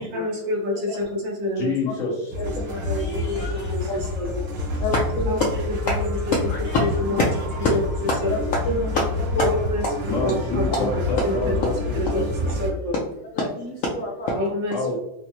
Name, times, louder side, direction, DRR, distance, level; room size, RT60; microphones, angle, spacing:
voice 1, 0.0-1.7 2.6-4.5 5.3-6.3 6.8-7.2 7.6-7.8 8.2-8.5 9.4-9.8 10.2-10.9 11.2-11.6 11.9-12.2 12.5-13.0 14.3-14.8, left 1 dB, 80° right, -1 dB, 1.7 m, -28 dB
voice 2, 1.6-2.3 2.7-3.9 4.6-4.9 6.5-6.9 10.1-12.5 14.7-15.0, left 3 dB, 50° left, -4 dB, 1.3 m, -29 dB
sound 1, 2.3-12.7, left 2 dB, 60° right, 1.2 m, -28 dB
voice 3, 4.8-5.4 5.9-6.0 6.7-7.2 8.3-8.4 8.6-9.6 11.2-11.3 13.3-14.5, left 2 dB, 70° left, -2 dB, 0.8 m, -25 dB
4.9 x 2.1 x 2.9 m, 0.84 s
omnidirectional pair, 2.0 m